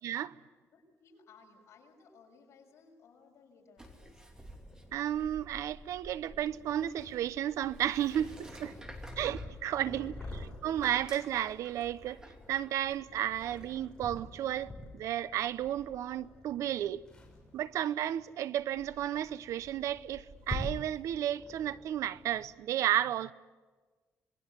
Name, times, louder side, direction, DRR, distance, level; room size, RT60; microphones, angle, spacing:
voice 1, 0.0-0.3 4.9-8.7 9.2-10.1 10.6-12.2 12.5-17.0 17.5-23.3, right 11 dB, 90° right, 0.7 m, -33 dB
voice 2, 0.7-4.2 9.9-10.4, left 4 dB, 65° left, 6.3 m, -60 dB
Purr, 3.8-22.5, left 1 dB, 15° left, 5.8 m, -47 dB
sound 1, 3.8-13.8, right 1 dB, 15° right, 2.9 m, -53 dB
27.0 x 20.5 x 8.1 m
cardioid pair, 135°, 5 cm